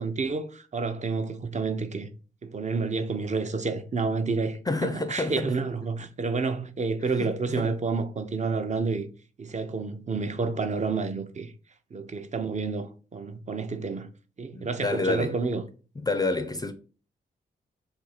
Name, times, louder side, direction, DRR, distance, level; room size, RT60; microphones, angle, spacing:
voice 1, 0.0-2.1 2.4-9.1 9.4-11.5 11.9-14.1 14.4-15.6, right 4 dB, 35° right, 0.5 m, -29 dB
voice 2, 4.7-5.5 7.1-7.7 14.5-15.4 16.0-16.7, left 2 dB, 20° left, 0.4 m, -29 dB
2.6 x 2.3 x 4.1 m
cardioid pair, 50°, 21 cm